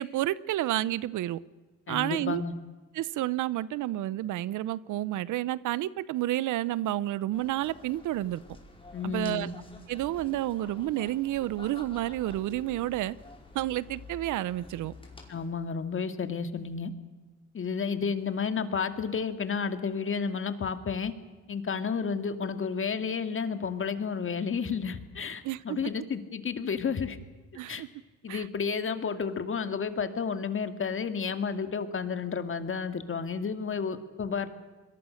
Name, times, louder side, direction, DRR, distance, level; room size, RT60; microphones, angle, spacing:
voice 1, 0.0-1.4 1.9-2.4 2.9-8.4 9.0-9.5 9.9-13.2 13.5-14.9 25.4-25.9 27.6-27.9 28.3-28.5, right 14 dB, 85° right, 0.8 m, -30 dB
voice 2, 1.9-2.5 8.9-9.5 15.3-16.9 17.5-21.1 21.5-27.2 27.7-27.8 28.2-34.5, left 6 dB, 45° left, 2.2 m, -31 dB
sound 1, 7.3-15.5, left 2 dB, 15° left, 5.2 m, -49 dB
28.0 x 22.0 x 6.5 m
cardioid pair, 90°, 30 cm